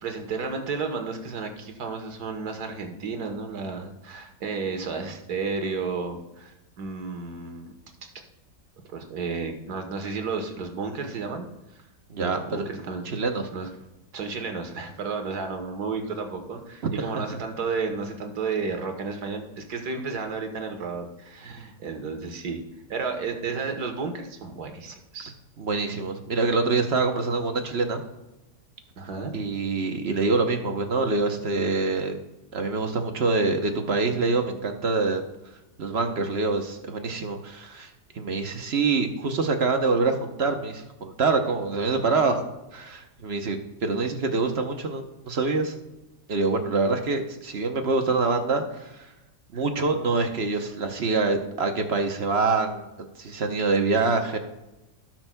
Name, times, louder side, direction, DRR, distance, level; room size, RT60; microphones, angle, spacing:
voice 1, 0.0-7.7 8.9-11.5 12.2-13.1 13.5-13.7 14.1-22.6 22.9-25.3 29.0-29.3 49.5-49.6 50.5-50.7, right 4 dB, 65° right, 5 dB, 1.7 m, -32 dB
voice 2, 12.1-12.7 13.0-13.5 17.0-17.1 25.6-28.0 29.3-32.2 32.5-35.2 35.8-45.7 46.3-49.1 49.5-52.8 53.2-54.4, right 3 dB, 50° right, 5 dB, 0.9 m, -25 dB
17.0 x 6.1 x 2.2 m, 0.98 s
omnidirectional pair, 1.8 m